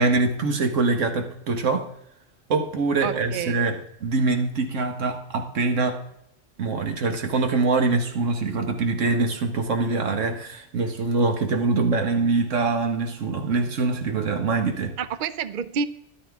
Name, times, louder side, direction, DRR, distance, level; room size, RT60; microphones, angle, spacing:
voice 1, 0.0-1.9 2.5-6.0 6.6-15.0, right 3 dB, 80° right, 5 dB, 1.6 m, -24 dB
voice 2, 3.0-3.6 15.0-15.9, right 6 dB, 55° right, 14 dB, 0.6 m, -28 dB
13.0 x 11.5 x 3.5 m, 0.77 s
omnidirectional pair, 1.3 m